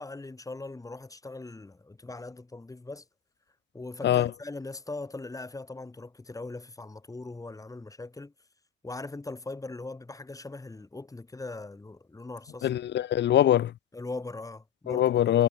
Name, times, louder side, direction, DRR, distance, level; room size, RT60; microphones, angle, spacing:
voice 1, 0.0-3.0 3.7-8.3 8.8-12.7 13.9-15.1, left 2 dB, 15° left, 2.5 m, -40 dB
voice 2, 12.6-13.7 14.9-15.5, left 11 dB, 60° left, 0.8 m, -23 dB
cardioid pair, 90°, 20 cm